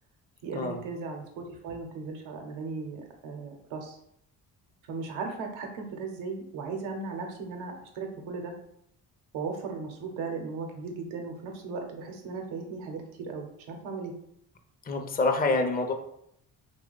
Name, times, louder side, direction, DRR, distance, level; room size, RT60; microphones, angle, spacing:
voice 1, 0.4-4.0 4.9-8.5 9.3-14.1, right 4 dB, 85° right, 3 dB, 0.8 m, -37 dB
voice 2, 14.8-15.9, left 3 dB, 20° left, 4 dB, 0.5 m, -26 dB
2.8 x 2.2 x 3.8 m, 0.73 s
supercardioid pair, 55°, 46 cm